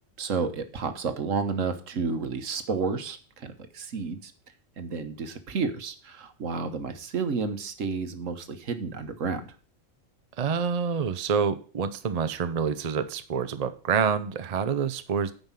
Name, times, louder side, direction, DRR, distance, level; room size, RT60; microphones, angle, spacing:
voice 1, 0.2-4.3 4.8-9.4, right 5 dB, 75° right, 9 dB, 1.5 m, -31 dB
voice 2, 10.4-15.3, right 6 dB, 40° right, 10 dB, 0.7 m, -27 dB
9.4 x 5.3 x 7.3 m, 0.39 s
omnidirectional pair, 1.3 m